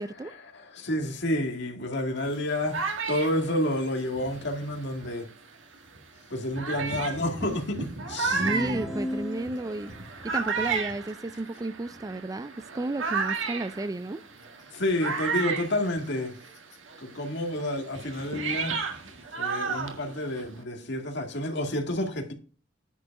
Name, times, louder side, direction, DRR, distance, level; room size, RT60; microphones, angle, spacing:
voice 1, 0.0-0.3 8.3-9.9 10.2-14.2, right 2 dB, 20° right, 0.4 m, -32 dB
voice 2, 0.5-5.2 6.3-8.4 14.7-16.3 17.0-18.7 19.4-22.3, left 1 dB, 60° left, 2.1 m, -29 dB
sound 1, 2.2-5.3 5.9-6.0 6.5-16.6 16.9-20.6, right 5 dB, 75° right, 1.7 m, -33 dB
sound 2, 8.4-10.0, left 1 dB, ahead, 1.0 m, -35 dB
9.9 x 4.9 x 5.3 m
head